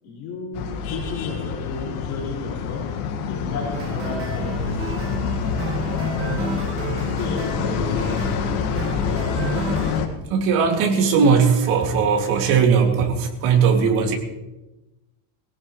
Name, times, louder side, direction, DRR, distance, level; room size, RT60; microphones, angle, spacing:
voice 1, 0.0-2.8 3.3-5.1 7.1-8.6, left 3 dB, 45° left, -3 dB, 5.3 m, -33 dB
sound 1, 0.5-10.1, left 7 dB, 80° left, 2.0 m, -27 dB
sound 2, 3.7-10.0, right 3 dB, 30° right, 1.6 m, -30 dB
voice 2, 10.3-14.2, right 6 dB, 50° right, 2 dB, 2.6 m, -18 dB
19.5 x 17.0 x 3.2 m, 1.0 s
cardioid pair, 175°, 43 cm